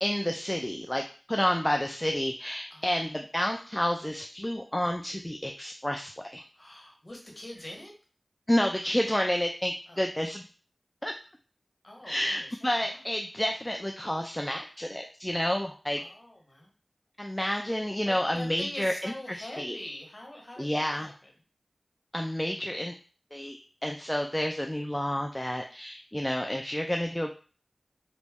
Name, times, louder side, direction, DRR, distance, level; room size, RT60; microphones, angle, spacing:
voice 1, 0.0-6.4 8.5-10.4 11.0-11.1 12.0-16.0 17.2-19.1 19.6-19.8 20.6-21.1 22.1-22.9 23.3-27.3, left 1 dB, 15° left, 3 dB, 0.4 m, -30 dB
voice 2, 6.5-7.9 9.9-10.0 11.8-13.0 16.0-16.7 18.0-21.3, left 1 dB, 45° left, 0 dB, 1.2 m, -44 dB
4.1 x 3.0 x 3.5 m, 0.39 s
wide cardioid pair, 45°, 0 cm